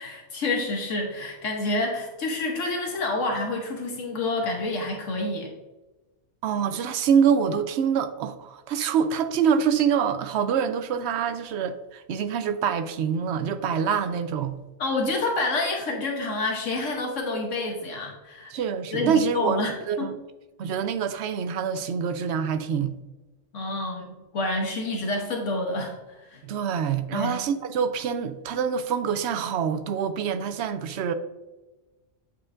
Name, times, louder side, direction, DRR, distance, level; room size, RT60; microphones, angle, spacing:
voice 1, 0.0-5.5 14.8-18.5 18.9-20.1 23.5-24.1 24.3-26.4 27.1-27.4, left 2 dB, 75° left, 1.3 m, -28 dB
voice 2, 6.4-14.5 18.5-19.6 19.9-20.2 20.6-22.9 26.4-31.1, right 7 dB, 65° right, 0.8 m, -25 dB
8.5 x 4.4 x 2.5 m
omnidirectional pair, 1.3 m